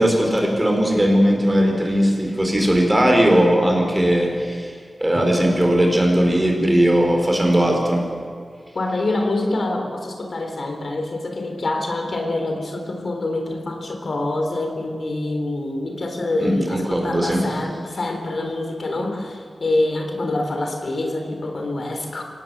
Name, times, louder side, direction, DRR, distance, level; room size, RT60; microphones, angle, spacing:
voice 1, 0.0-4.7 5.0-8.0 16.4-17.4, equal, 15° right, 2 dB, 5.0 m, -18 dB
voice 2, 8.7-22.2, left 2 dB, 60° left, 4 dB, 3.7 m, -25 dB
25.5 x 18.5 x 8.0 m, 2.1 s
wide cardioid pair, 105°, 0 cm